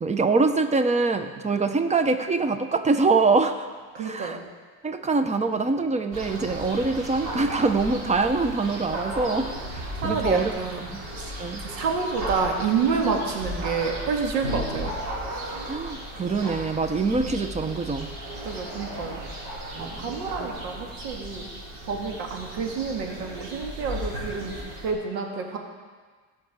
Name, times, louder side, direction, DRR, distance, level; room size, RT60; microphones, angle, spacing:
voice 1, 0.0-3.7 3.9-4.4 4.8-9.5 10.0-10.5 10.9-11.0 11.4-11.6 15.6-18.1 19.7-20.5, right 3 dB, 20° right, 9 dB, 0.8 m, -24 dB
voice 2, 3.9-4.4 10.0-10.9 11.6-14.9 15.3-15.7 18.4-19.2 19.8-21.5 21.9-24.5 24.8-25.6, right 5 dB, 85° right, 1 dB, 1.9 m, -28 dB
sound 1, 6.1-24.9, right 1 dB, 70° right, 3.7 m, -35 dB
17.0 x 6.0 x 4.8 m, 1.5 s
supercardioid pair, 100°, 37 cm